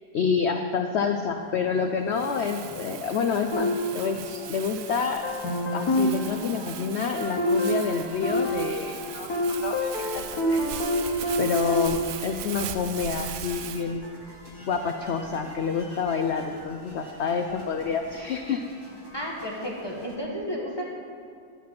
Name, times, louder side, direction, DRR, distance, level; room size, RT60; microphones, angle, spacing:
voice 1, 0.1-5.3 5.7-10.7 11.4-14.1 14.6-18.7, left 5 dB, 80° left, 6 dB, 0.6 m, -28 dB
sound 1, 0.8-20.2, equal, 15° right, 1.2 m, -48 dB
Crumpling crinkling, 2.1-13.8, right 10 dB, 70° right, 1.1 m, -39 dB
sound 2, 3.5-4.8 5.2-11.9, left 1 dB, 65° left, 1.7 m, -27 dB
voice 2, 19.1-20.8, equal, 15° left, -3 dB, 1.3 m, -32 dB
11.0 x 5.8 x 7.6 m, 2.3 s
omnidirectional pair, 1.8 m